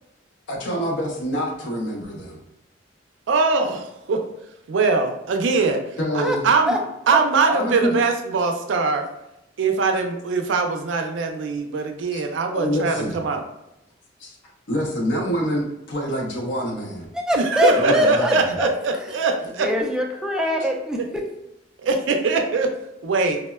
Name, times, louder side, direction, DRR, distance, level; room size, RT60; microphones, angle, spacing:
voice 1, 0.5-2.4 6.0-6.5 7.4-8.0 12.1-12.2 12.5-13.2 14.2-14.3 14.7-17.1 17.7-18.6, equal, 75° left, 0 dB, 0.7 m, -26 dB
voice 2, 3.3-4.2 4.7-5.8 6.1-6.8 7.1-9.1 9.6-13.4 17.4-19.7 21.0-21.1 21.8-22.7 23.0-23.4, right 4 dB, 75° right, 4 dB, 0.4 m, -22 dB
voice 3, 17.1-18.7 19.6-21.0, equal, 5° right, 1 dB, 0.3 m, -22 dB
3.4 x 2.1 x 2.2 m, 0.88 s
head